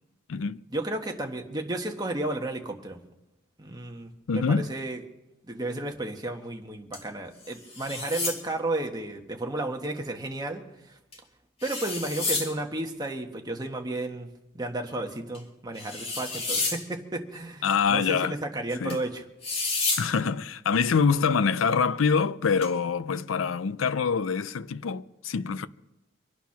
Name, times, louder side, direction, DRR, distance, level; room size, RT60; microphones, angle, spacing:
voice 1, 0.7-3.0 3.6-5.0 5.5-10.6 10.9-11.0 11.6-14.3 14.5-19.2, right 2 dB, 20° right, 1.4 m, -33 dB
voice 2, 4.3-4.7 17.6-18.3 18.8-19.0 20.0-25.7, left 5 dB, 85° left, 0.5 m, -25 dB
sound 1, 6.9-7.0 7.4-8.4 11.1-11.2 11.6-12.5 15.3-15.4 15.7-16.8 18.9-19.0 19.4-20.1 22.6-22.7, left 3 dB, 30° left, 2.5 m, -30 dB
25.0 x 9.4 x 5.9 m
head